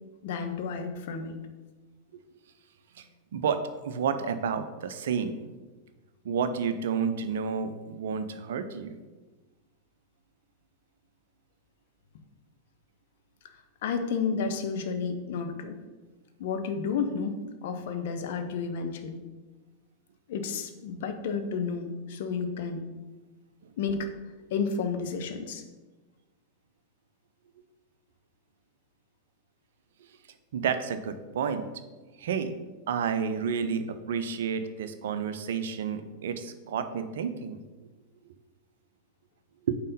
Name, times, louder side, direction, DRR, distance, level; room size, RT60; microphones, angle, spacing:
voice 1, 0.2-1.4 13.8-15.8 16.4-17.4 17.6-19.2 20.3-22.9 23.8-24.1 24.5-25.6, left 5 dB, 55° left, 6 dB, 0.7 m, -31 dB
voice 2, 3.3-5.4 6.2-9.0 30.5-31.6 32.2-32.6 32.9-37.6 39.7-39.8, right 6 dB, 60° right, 9 dB, 0.5 m, -30 dB
5.4 x 4.1 x 5.3 m, 1.2 s
figure-of-eight pair, 90°, 0 cm